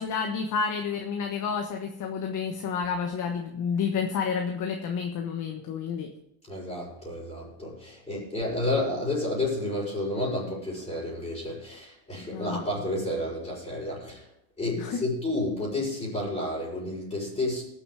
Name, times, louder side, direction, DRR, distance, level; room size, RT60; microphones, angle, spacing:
voice 1, 0.0-6.1 12.3-12.6 14.8-15.0, left 6 dB, 45° left, 4 dB, 1.3 m, -30 dB
voice 2, 6.5-14.2 14.6-17.6, left 1 dB, 15° left, -5 dB, 5.9 m, -31 dB
18.5 x 7.0 x 4.9 m, 0.79 s
supercardioid pair, 125°, 44 cm